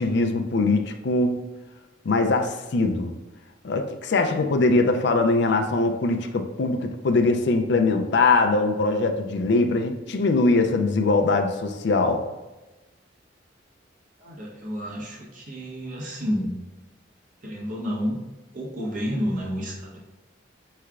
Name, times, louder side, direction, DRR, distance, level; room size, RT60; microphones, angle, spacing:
voice 1, 0.0-1.5 2.1-3.1 3.6-12.3, left 3 dB, 65° left, 5 dB, 0.4 m, -22 dB
voice 2, 14.2-16.6 17.4-18.2 18.5-20.0, equal, 45° right, -3 dB, 1.0 m, -30 dB
5.6 x 3.2 x 2.4 m, 1.1 s
head